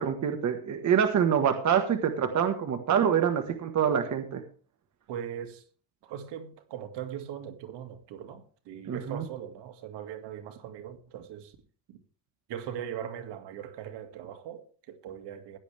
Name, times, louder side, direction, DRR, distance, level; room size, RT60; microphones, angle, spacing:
voice 1, 0.0-4.4 8.9-9.2, right 8 dB, 40° right, 1.5 m, -26 dB
voice 2, 5.1-5.6 6.0-11.6 11.9-12.0 12.5-15.6, right 9 dB, 65° right, 2.2 m, -40 dB
16.0 x 10.5 x 3.5 m
cardioid pair, 135°, 44 cm